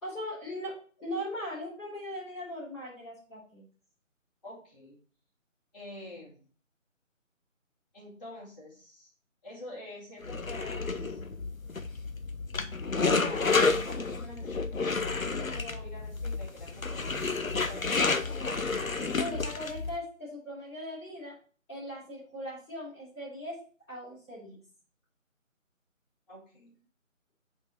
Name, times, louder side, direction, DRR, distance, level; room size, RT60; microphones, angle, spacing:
voice 1, 0.0-3.6 19.2-21.4 21.7-23.6 23.9-24.6, equal, 5° left, -14 dB, 4.1 m, -39 dB
voice 2, 4.4-5.0 5.7-6.4 7.9-9.1 9.4-11.2 12.9-18.4 26.3-26.8, left 1 dB, 30° left, -11 dB, 2.8 m, -47 dB
sound 1, 10.2-20.0, left 4 dB, 85° left, 0.9 m, -30 dB
8.0 x 4.6 x 4.1 m, 0.40 s
figure-of-eight pair, 160°, 40 cm